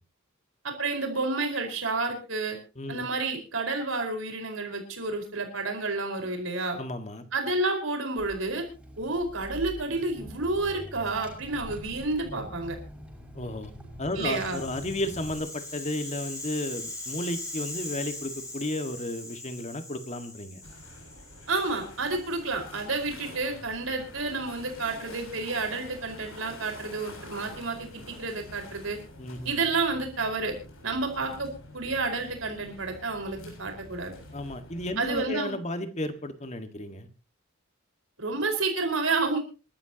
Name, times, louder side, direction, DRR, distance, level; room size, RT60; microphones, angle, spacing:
voice 1, 0.6-2.6 2.9-6.8 7.3-8.6 9.0-12.8 14.2-14.6 21.5-29.0 29.4-30.5 30.8-34.1 35.0-35.6 38.2-39.4, right 3 dB, 75° right, 3 dB, 4.7 m, -30 dB
voice 2, 6.8-7.3 13.3-13.7 14.0-20.6 29.2-29.6 34.3-37.1, left 1 dB, 35° left, 8 dB, 1.7 m, -33 dB
Car / Engine, 8.2-15.4, equal, 5° right, 5.7 m, -44 dB
Rattle (instrument), 14.1-22.3, left 2 dB, 15° left, 5.4 m, -40 dB
sound 1, 20.6-35.3, left 1 dB, 85° left, 7.0 m, -47 dB
27.0 x 13.0 x 2.9 m, 0.32 s
head